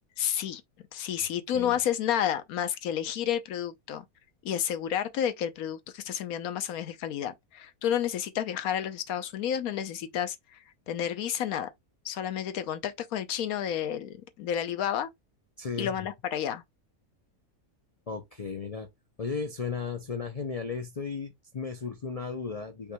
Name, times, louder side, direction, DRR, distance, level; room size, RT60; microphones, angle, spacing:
voice 1, 0.2-0.6 0.9-4.0 4.4-11.7 12.0-15.1 15.8-16.6, left 9 dB, 80° left, 1.2 m, -31 dB
voice 2, 15.6-16.1 18.1-18.9 19.2-22.9, left 5 dB, 55° left, 0.4 m, -35 dB
5.3 x 2.2 x 4.4 m
omnidirectional pair, 1.5 m